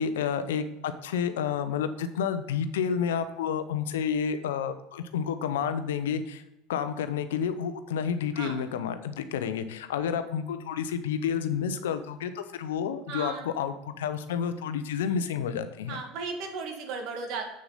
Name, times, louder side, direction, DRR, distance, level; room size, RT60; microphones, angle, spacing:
voice 1, 0.0-6.4 6.7-16.0, left 7 dB, 85° left, 10 dB, 0.7 m, -30 dB
voice 2, 13.1-13.4 15.9-17.4, right 4 dB, 60° right, 3 dB, 1.9 m, -35 dB
7.7 x 7.0 x 4.0 m, 0.93 s
hypercardioid pair, 85°, 0 cm